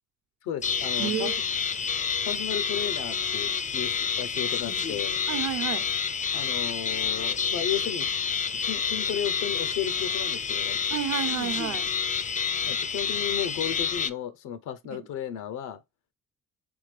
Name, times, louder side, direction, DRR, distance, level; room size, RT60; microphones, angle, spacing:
voice 1, 0.4-1.3 2.3-5.2 6.3-8.1 8.6-10.8 12.7-15.8, left 10 dB, 85° left, 0.6 m, -34 dB
sound 1, 0.6-14.1, left 6 dB, 25° left, 0.4 m, -29 dB
voice 2, 1.0-1.4 5.3-5.8 10.9-11.9 14.9-15.0, right 9 dB, 65° right, 0.8 m, -30 dB
3.6 x 3.5 x 3.2 m
cardioid pair, 90°, 30 cm